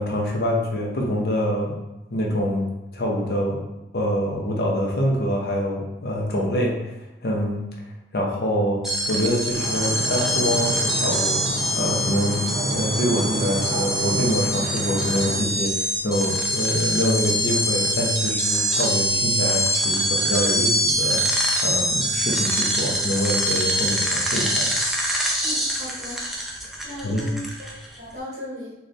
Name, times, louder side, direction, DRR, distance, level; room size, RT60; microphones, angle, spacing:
voice 1, 0.0-1.8 2.1-2.7 2.9-3.6 3.9-6.9 7.2-7.7 8.1-8.8 9.1-11.4 11.7-21.2 21.6-24.8 27.0-27.3, equal, 65° left, -1 dB, 0.7 m, -25 dB
sound 1, 8.8-28.0, equal, ahead, 0.4 m, -24 dB
sound 2, 9.5-15.3, equal, 60° right, 0.6 m, -30 dB
voice 2, 25.4-26.2 26.8-28.7, equal, 45° right, -7 dB, 1.5 m, -36 dB
4.0 x 2.4 x 3.2 m, 1.0 s
head